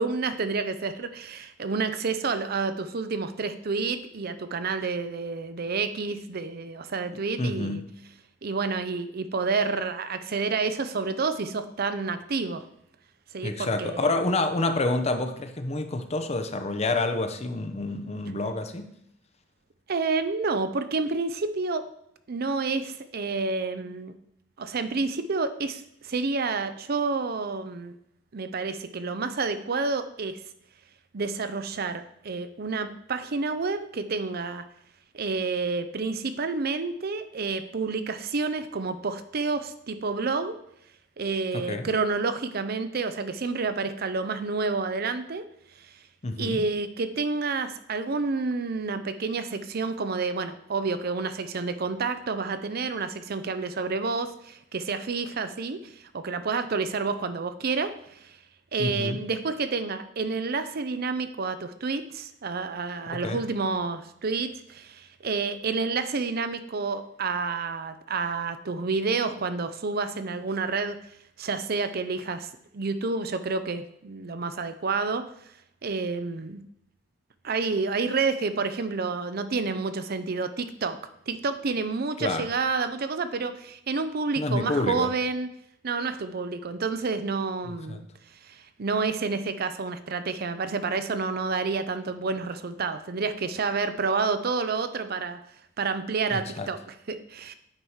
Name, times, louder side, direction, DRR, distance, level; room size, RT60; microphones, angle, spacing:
voice 1, 0.0-7.8 8.4-12.6 13.3-14.1 19.9-21.9 22.3-24.1 24.6-28.0 28.3-30.4 31.1-34.7 35.1-40.6 41.2-45.5 45.8-45.9 46.4-58.4 58.7-71.0 71.4-75.2 75.8-76.6 77.4-81.0 81.3-85.5 85.8-88.1 88.4-95.4 95.8-97.5, right 4 dB, 55° right, 11 dB, 0.6 m, -29 dB
voice 2, 7.4-7.9 13.4-18.9 41.5-41.9 46.2-46.7 58.8-59.2 63.1-63.4 82.2-82.5 84.4-85.1 87.7-88.0 96.3-96.7, left 2 dB, 35° left, 8 dB, 0.7 m, -28 dB
8.9 x 4.7 x 5.6 m, 0.75 s
head